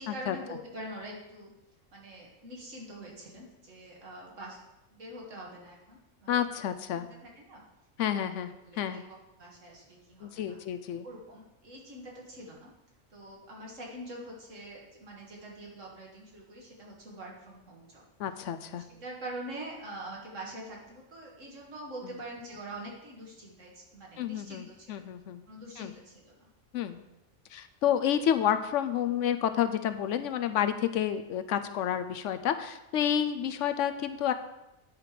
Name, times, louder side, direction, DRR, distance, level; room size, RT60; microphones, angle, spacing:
voice 1, 0.0-1.5 1.9-4.6 4.9-6.5 6.9-7.6 8.0-10.6 11.0-12.7 13.1-18.0 18.7-25.1 25.5-26.4, right 1 dB, 75° right, -2 dB, 2.3 m, -45 dB
voice 2, 6.3-7.1 8.0-8.5 8.8-9.0 10.2-11.1 18.2-18.8 24.2-25.4 25.8-25.9 26.7-27.0 27.5-34.3, left 9 dB, 75° left, 9 dB, 0.9 m, -30 dB
9.9 x 4.8 x 5.0 m, 0.92 s
omnidirectional pair, 1.3 m